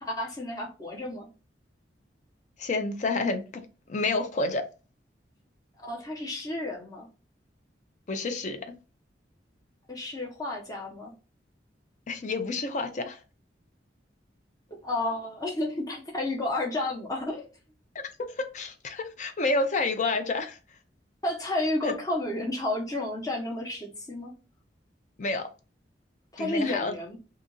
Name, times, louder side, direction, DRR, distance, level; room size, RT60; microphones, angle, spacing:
voice 1, 0.0-1.3 5.8-7.1 9.9-11.1 14.8-17.5 21.2-24.3 26.3-27.2, left 2 dB, 20° left, 0.8 m, -31 dB
voice 2, 2.6-4.6 8.1-8.6 12.1-13.2 18.2-20.6 21.8-21.9 25.2-25.5 26.4-26.9, left 3 dB, 40° left, 0.5 m, -29 dB
2.7 x 2.4 x 3.8 m
head